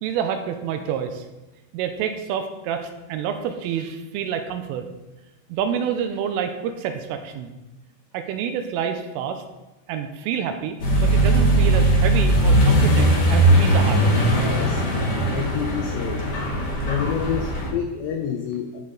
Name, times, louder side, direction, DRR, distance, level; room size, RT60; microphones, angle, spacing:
voice 1, 0.0-1.2 1.7-4.9 5.5-7.5 8.1-9.4 9.9-14.4, right 8 dB, 85° right, 7 dB, 3.1 m, -28 dB
Accelerating revving vroom, 10.8-17.7, right 1 dB, 40° left, 1.4 m, -19 dB
voice 2, 15.3-16.2 16.9-18.8, left 8 dB, 80° left, 2 dB, 2.6 m, -28 dB
14.5 x 5.4 x 3.9 m, 1.0 s
omnidirectional pair, 5.9 m